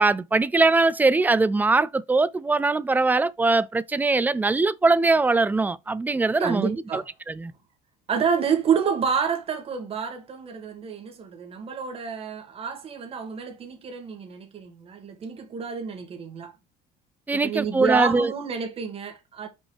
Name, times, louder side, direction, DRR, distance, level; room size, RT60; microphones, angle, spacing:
voice 1, 0.0-7.0 7.3-7.5 17.3-18.3, right 3 dB, 10° right, 0.3 m, -21 dB
voice 2, 6.4-7.1 8.1-16.5 17.3-19.5, right 6 dB, 35° right, 1.9 m, -28 dB
5.6 x 5.3 x 3.3 m
cardioid pair, 140°, 18 cm